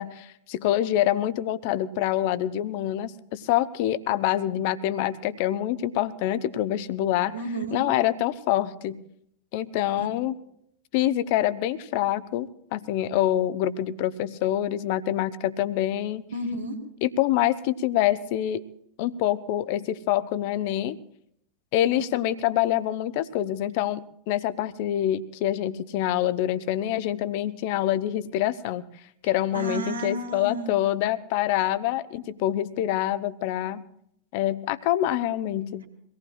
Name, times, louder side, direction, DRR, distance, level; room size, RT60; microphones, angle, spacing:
voice 1, 0.0-7.4 7.7-9.0 9.5-10.3 10.9-16.2 17.0-18.6 19.0-21.0 21.7-28.8 29.2-33.8 34.3-35.8, left 12 dB, 45° left, 15 dB, 0.7 m, -26 dB
voice 2, 7.3-7.8 10.0-10.1 16.3-16.8 29.5-30.8, right 2 dB, 75° right, 3 dB, 2.0 m, -32 dB
24.0 x 18.0 x 2.4 m, 0.72 s
figure-of-eight pair, 90°, 0 cm